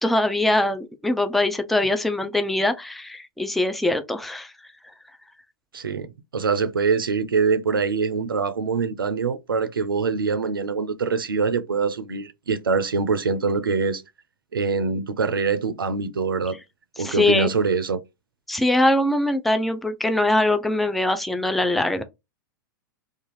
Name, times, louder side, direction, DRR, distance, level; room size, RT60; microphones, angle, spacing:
voice 1, 0.0-4.5 17.0-17.5 18.5-22.0, left 1 dB, ahead, 0.3 m, -22 dB
voice 2, 5.7-14.0 14.5-16.6 17.0-18.0, right 5 dB, 90° right, 0.4 m, -24 dB
2.5 x 2.3 x 3.0 m
hypercardioid pair, 105°, 11 cm